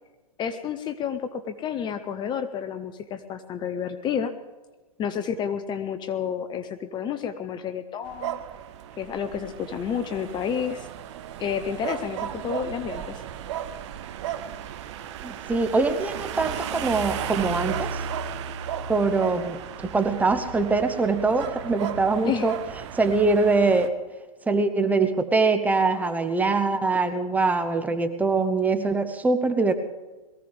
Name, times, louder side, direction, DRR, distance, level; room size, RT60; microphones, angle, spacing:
voice 1, 0.4-4.3 5.0-8.4 9.0-10.9 11.4-13.2 22.2-22.5, left 8 dB, 25° left, 10 dB, 0.9 m, -30 dB
sound 1, 8.0-23.9, right 8 dB, 50° right, 1.1 m, -35 dB
voice 2, 15.2-18.0 18.9-22.5 22.9-23.9 24.5-29.7, right 3 dB, 10° right, 8 dB, 1.1 m, -23 dB
22.0 x 15.5 x 3.5 m, 1.2 s
hypercardioid pair, 120°, 19 cm